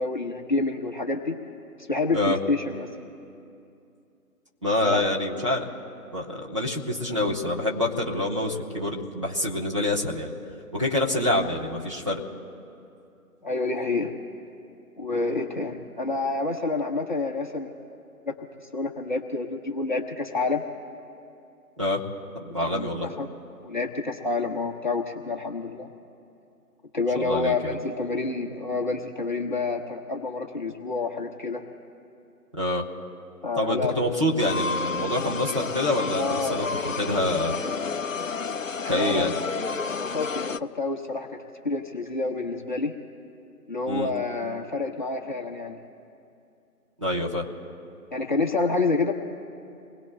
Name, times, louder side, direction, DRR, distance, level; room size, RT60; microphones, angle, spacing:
voice 1, 0.0-1.3 1.9-2.9 4.8-5.0 5.4-5.6 11.1-11.4 13.4-14.1 15.0-17.7 18.3-18.4 18.7-20.6 22.7-23.3 23.6-25.9 26.9-31.6 33.4-33.9 36.2-36.6 38.9-39.3 39.9-41.4 41.6-42.9 43.7-45.8 48.1-49.1, left 3 dB, 30° left, 0 dB, 1.1 m, -28 dB
voice 2, 4.6-5.7 6.1-10.3 10.7-12.2 21.8-22.0 22.3-23.1 27.1-27.8 32.6-32.9 33.5-37.6 38.9-39.3 43.9-44.1 47.0-47.4, left 1 dB, 20° right, -6 dB, 1.1 m, -26 dB
sound 1, 34.4-40.6, left 4 dB, 60° left, 0.5 m, -30 dB
28.5 x 21.0 x 2.2 m, 2.6 s
figure-of-eight pair, 160°, 47 cm